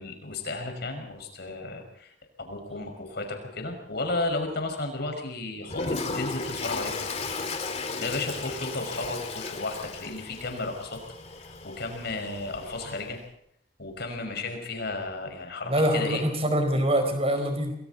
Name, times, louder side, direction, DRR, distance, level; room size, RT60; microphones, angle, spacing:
voice 1, 0.0-7.1 8.0-11.0 11.6-13.2 13.8-16.2, left 2 dB, 60° left, 4 dB, 5.8 m, -33 dB
Toilet flush, 5.7-13.2, left 3 dB, 35° left, 2.2 m, -35 dB
voice 2, 15.7-17.8, right 1 dB, 35° right, 6 dB, 4.5 m, -24 dB
29.0 x 21.5 x 4.2 m, 0.69 s
head